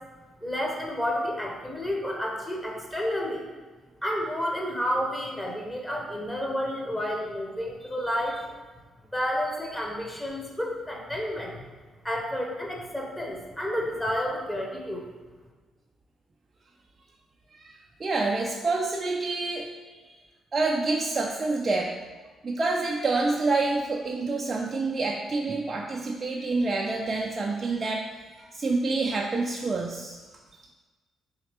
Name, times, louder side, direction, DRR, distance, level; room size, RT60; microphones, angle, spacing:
voice 1, 0.4-3.4 4.0-8.5 9.1-11.6 12.0-15.0, equal, 10° left, 0 dB, 0.8 m, -30 dB
voice 2, 18.0-20.0 20.5-21.9 22.4-28.0 28.4-30.2, right 3 dB, 35° right, -1 dB, 0.3 m, -27 dB
4.1 x 3.1 x 2.8 m, 1.3 s
figure-of-eight pair, 40°, 0 cm